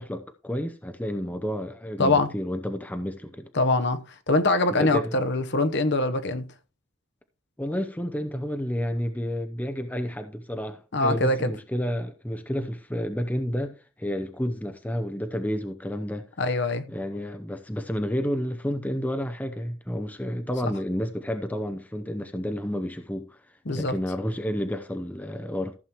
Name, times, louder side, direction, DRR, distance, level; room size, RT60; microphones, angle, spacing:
voice 1, 0.0-3.5 4.8-5.2 7.6-16.3 16.9-23.4 23.7-25.8, equal, 5° left, 0.6 m, -30 dB
voice 2, 2.0-2.3 3.5-6.4 10.9-11.5 16.4-16.8 23.7-23.9, left 2 dB, 50° left, 0.9 m, -23 dB
14.5 x 7.4 x 3.0 m
head